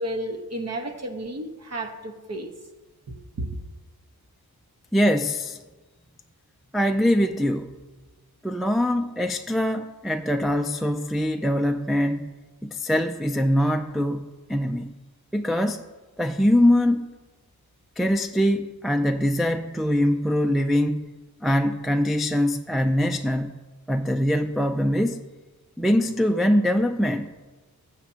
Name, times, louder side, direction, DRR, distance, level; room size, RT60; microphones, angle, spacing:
voice 1, 0.0-2.5 3.1-3.6, right 1 dB, 45° right, 5 dB, 1.2 m, -32 dB
voice 2, 4.9-5.6 6.7-7.7 8.4-12.3 12.6-14.2 14.5-14.9 15.3-15.8 16.2-17.1 18.0-21.1 21.4-23.6 23.9-25.2 25.8-27.3, equal, ahead, 5 dB, 0.3 m, -23 dB
15.5 x 7.3 x 2.8 m, 1.2 s
wide cardioid pair, 105°, 37 cm